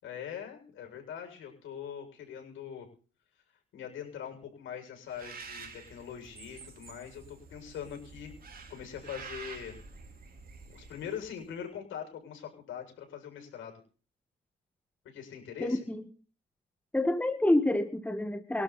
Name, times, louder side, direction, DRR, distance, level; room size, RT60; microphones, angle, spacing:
voice 1, 0.0-2.9 3.7-8.3 8.7-9.7 10.7-13.8 15.0-15.8, left 8 dB, 80° left, 3 dB, 7.1 m, -42 dB
Bird, 5.1-11.5, right 5 dB, 50° right, 4.0 m, -48 dB
voice 2, 15.6-16.0 16.9-18.6, left 1 dB, 5° left, 8 dB, 1.8 m, -28 dB
24.5 x 12.0 x 4.3 m, 0.40 s
cardioid pair, 90°, 20 cm